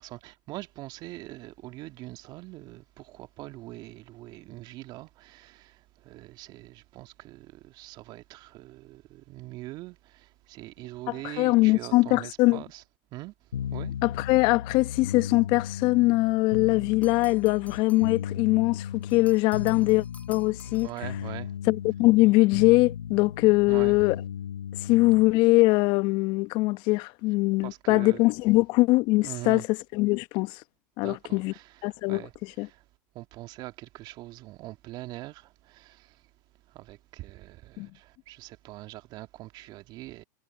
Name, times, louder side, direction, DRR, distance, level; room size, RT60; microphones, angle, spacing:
voice 1, 0.0-12.8 13.1-14.0 20.8-21.6 23.7-24.0 27.6-28.2 29.2-29.7 31.0-32.9 33.1-36.3 36.7-40.2, right 17 dB, 45° right, 2.2 m, -43 dB
voice 2, 11.2-12.6 14.0-20.9 21.7-24.2 24.8-29.6 29.9-30.6 31.0-31.5 31.8-32.2 32.6-32.7 37.8-37.9, left 22 dB, 50° left, 1.1 m, -22 dB
sound 1, 13.5-25.4, left 9 dB, 90° left, 5.5 m, -36 dB
sound 2, 17.0-18.3 19.0-21.2, left 3 dB, 15° left, 5.4 m, -53 dB
hypercardioid pair, 105°, 10 cm